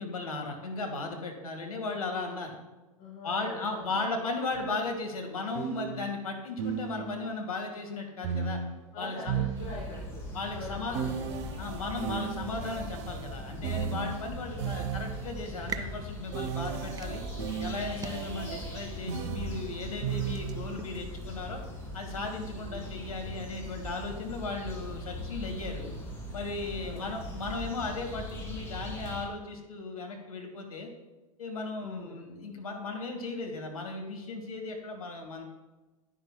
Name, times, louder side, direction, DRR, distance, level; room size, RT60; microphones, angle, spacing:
voice 1, 0.0-2.6 3.2-8.6 9.0-9.4 10.3-11.1 11.6-17.2 17.6-21.6 21.9-25.9 26.3-30.9 31.4-35.4, left 3 dB, 75° left, 3 dB, 1.7 m, -36 dB
voice 2, 3.0-4.3 8.9-11.5 14.6-14.9 18.2-18.6 22.6-22.9 26.8-27.1 31.8-32.2, left 2 dB, 35° left, -6 dB, 2.8 m, -44 dB
sound 1, 4.5-4.7 5.5-7.4 8.2-10.2 10.9-15.5 16.3-20.8, right 7 dB, 50° right, 0.7 m, -36 dB
sound 2, 9.5-29.3, left 1 dB, 15° left, 2.6 m, -40 dB
sound 3, 15.5-21.0, right 6 dB, 20° right, 0.5 m, -46 dB
10.0 x 10.0 x 2.2 m, 1.1 s
figure-of-eight pair, 90°, 19 cm